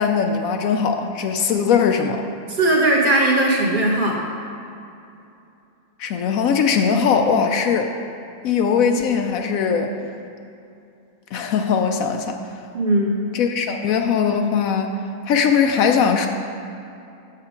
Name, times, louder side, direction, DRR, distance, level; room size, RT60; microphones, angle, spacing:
voice 1, 0.0-2.2 6.0-7.9 8.4-9.9 11.3-12.4 13.3-15.0 15.3-16.3, left 6 dB, 75° left, 5 dB, 0.9 m, -20 dB
voice 2, 2.5-4.2 12.7-13.2, right 1 dB, 35° right, -4 dB, 1.3 m, -18 dB
7.5 x 7.4 x 5.0 m, 2.7 s
omnidirectional pair, 1.6 m